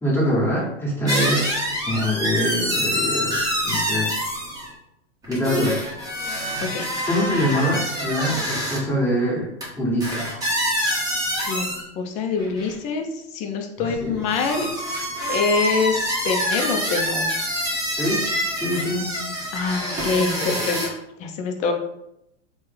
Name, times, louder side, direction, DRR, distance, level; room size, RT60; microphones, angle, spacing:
voice 1, 0.0-4.1 5.3-5.7 7.1-9.5 9.8-10.3 14.0-14.3 17.9-18.2 18.6-19.1, equal, 5° left, -7 dB, 1.3 m, -24 dB
sound 1, 1.1-4.7 5.2-8.8 9.6-9.7 10.0-11.8 12.4-12.7 13.8-20.9, equal, 10° right, 0.9 m, -26 dB
voice 2, 11.5-14.7 15.3-16.0 16.2-17.3 19.5-21.7, left 4 dB, 20° left, 3 dB, 0.3 m, -25 dB
3.2 x 2.1 x 3.4 m, 0.83 s
hypercardioid pair, 120°, 35 cm